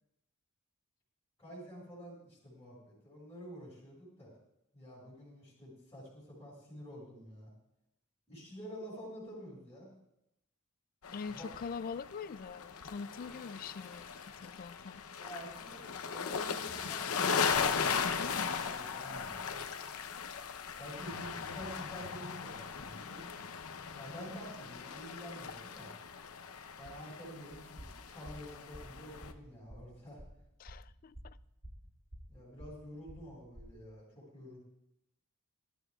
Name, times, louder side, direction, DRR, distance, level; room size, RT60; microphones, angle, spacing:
voice 1, 1.4-4.3 4.7-7.5 8.3-9.9 11.3-11.5 15.1-19.6 20.8-23.2 24.0-25.9 26.8-30.2 32.3-34.6, equal, 10° left, -8 dB, 5.6 m, -49 dB
sound 1, 11.0-29.3, left 6 dB, 75° left, 0.8 m, -38 dB
voice 2, 11.1-15.0 30.6-31.4, left 5 dB, 40° left, 17 dB, 0.3 m, -43 dB
sound 2, 27.5-33.9, equal, 30° right, 1.8 m, -51 dB
20.0 x 12.5 x 2.4 m, 0.83 s
head